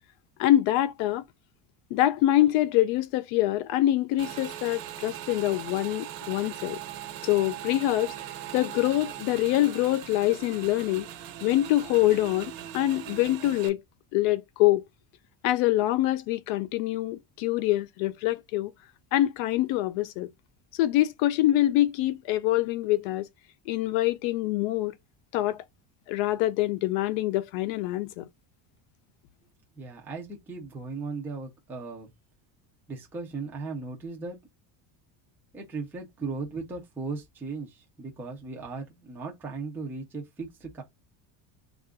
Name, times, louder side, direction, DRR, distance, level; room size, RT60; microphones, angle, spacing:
voice 1, 0.4-1.2 1.9-6.8 7.2-8.1 8.5-11.1 11.4-13.8 14.1-14.8 15.4-18.7 19.1-20.3 20.8-23.3 23.7-25.0 25.3-25.6 26.1-28.2, left 15 dB, 65° left, 0.6 m, -25 dB
Motorcycle / Engine, 4.2-13.7, right 11 dB, 90° right, 1.1 m, -40 dB
voice 2, 29.8-32.1 32.9-34.4 35.5-40.8, right 4 dB, 5° right, 0.3 m, -37 dB
3.7 x 2.5 x 3.4 m
cardioid pair, 175°, 50 cm